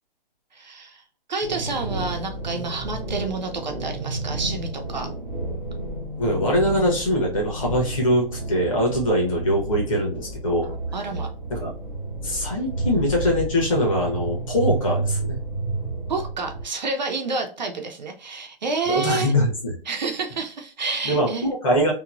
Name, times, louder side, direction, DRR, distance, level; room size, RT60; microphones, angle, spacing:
voice 1, 0.5-1.0 1.3-5.1 10.9-11.3 16.1-19.3 19.9-21.5, right 3 dB, 50° right, 4 dB, 0.4 m, -29 dB
sound 1, 1.4-16.6, right 2 dB, 20° left, 0.5 m, -31 dB
voice 2, 6.2-10.7 11.5-11.7 12.2-15.4 18.9-19.8 21.0-21.9, equal, 35° left, -2 dB, 0.9 m, -22 dB
2.9 x 2.0 x 2.4 m, 0.40 s
hypercardioid pair, 170°, 29 cm